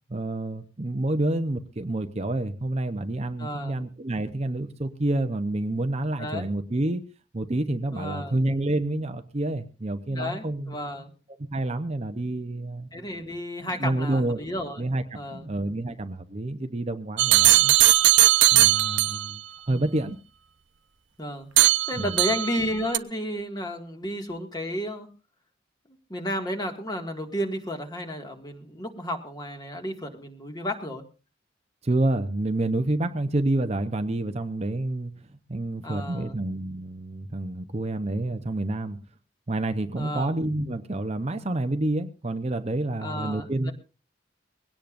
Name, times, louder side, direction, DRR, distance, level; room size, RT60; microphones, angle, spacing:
voice 1, 0.1-7.0 7.3-10.8 11.5-13.0 13.7-14.4 14.8-17.8 18.5-20.2 22.0-22.1 31.8-35.1 35.5-39.0 39.5-43.7, right 2 dB, 35° right, 0.8 m, -28 dB
voice 2, 3.4-3.8 6.2-6.5 7.9-8.3 10.1-11.1 12.9-14.8 15.1-15.5 19.7-19.9 21.2-25.1 26.1-31.0 35.8-36.3 40.0-40.4 43.0-43.7, equal, 20° left, 2.0 m, -32 dB
sound 1, 17.2-19.3 21.6-22.6 22.9-23.0, right 15 dB, 80° right, 0.7 m, -19 dB
21.5 x 17.5 x 2.6 m
head